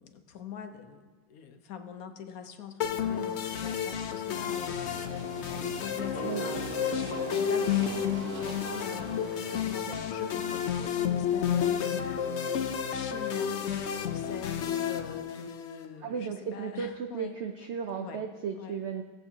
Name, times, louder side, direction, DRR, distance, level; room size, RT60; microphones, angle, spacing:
voice 1, 0.0-17.4 18.0-18.8, left 7 dB, 60° left, 7 dB, 1.1 m, -44 dB
sound 1, 2.8-15.8, left 8 dB, 80° left, 0.6 m, -31 dB
Engine, 3.1-10.6, right 5 dB, 65° right, 1.3 m, -45 dB
sound 2, 6.1-8.5, right 3 dB, 20° left, 2.3 m, -42 dB
voice 2, 16.0-19.0, right 6 dB, 85° right, 5 dB, 0.6 m, -35 dB
18.0 x 7.9 x 2.8 m, 1.5 s
omnidirectional pair, 1.9 m